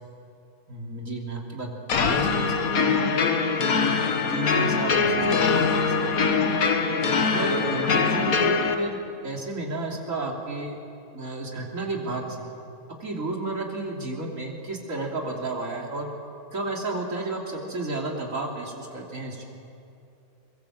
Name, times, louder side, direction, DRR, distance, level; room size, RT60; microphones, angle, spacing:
voice 1, 0.7-3.2 3.8-4.0 4.3-6.6 7.3-10.8 11.1-12.5 13.0-16.1 16.5-19.5, right 2 dB, 60° right, 0 dB, 3.5 m, -32 dB
sound 1, 1.9-8.7, left 5 dB, 70° left, 1.7 m, -23 dB
23.0 x 22.0 x 7.5 m, 2.8 s
omnidirectional pair, 1.5 m